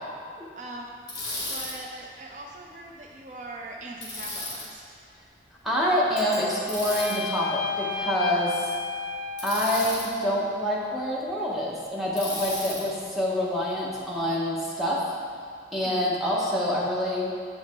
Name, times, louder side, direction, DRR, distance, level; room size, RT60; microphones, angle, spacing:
voice 1, 0.6-1.0 1.5-5.0 15.8-16.2, right 2 dB, 45° right, 0 dB, 0.4 m, -41 dB
Bicycle, 1.1-1.7 4.0-4.6 6.7-7.2 9.4-10.1 12.2-12.8, left 2 dB, 25° left, 1.6 m, -34 dB
sound 1, 3.1-3.2 3.6-3.7 3.9-4.0 4.6-4.8 5.1-5.2 6.1-11.4 12.1-12.6 12.9-13.3 13.5-13.6, left 1 dB, 15° right, 1.6 m, -48 dB
voice 2, 5.6-8.7 9.4-15.0 15.7-17.3, equal, ahead, -6 dB, 0.9 m, -26 dB
sound 2, 5.8-10.1, left 4 dB, 65° left, 0.7 m, -34 dB
8.0 x 4.8 x 3.6 m, 2.2 s
head